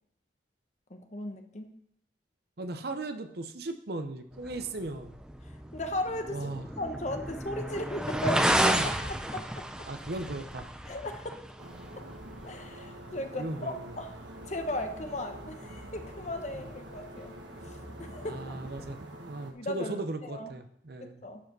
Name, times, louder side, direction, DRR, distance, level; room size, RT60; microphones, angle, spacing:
voice 1, 0.9-1.7 5.5-6.4 6.8-9.6 10.9-11.4 12.4-14.1 14.4-17.3 17.6-18.6 19.5-20.0 20.3-20.5 21.0-21.4, left 1 dB, 40° left, 5 dB, 1.1 m, -36 dB
voice 2, 2.6-5.2 6.3-6.7 8.8-8.9 9.9-10.7 13.4-13.9 18.2-21.2, right 2 dB, 55° right, 8 dB, 0.8 m, -37 dB
sound 1, 4.3-18.9, right 1 dB, 5° right, 0.5 m, -35 dB
sound 2, 11.6-19.5, right 1 dB, 85° right, 1.4 m, -47 dB
11.5 x 4.9 x 6.1 m, 0.73 s
head